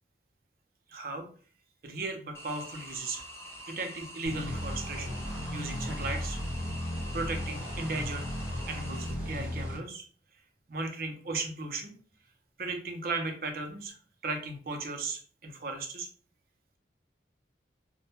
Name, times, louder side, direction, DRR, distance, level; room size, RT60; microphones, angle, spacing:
voice 1, 0.9-1.3 1.8-3.2 3.7-5.2 5.5-6.4 7.1-8.3 8.7-10.0 10.7-11.9 12.6-14.0 14.2-16.1, right 3 dB, 55° right, 4 dB, 0.5 m, -36 dB
sound 1, 2.3-9.1, equal, 15° left, 0.4 m, -46 dB
sound 2, 4.2-9.8, left 1 dB, 10° right, 1.0 m, -35 dB
2.1 x 2.1 x 2.9 m, 0.42 s
head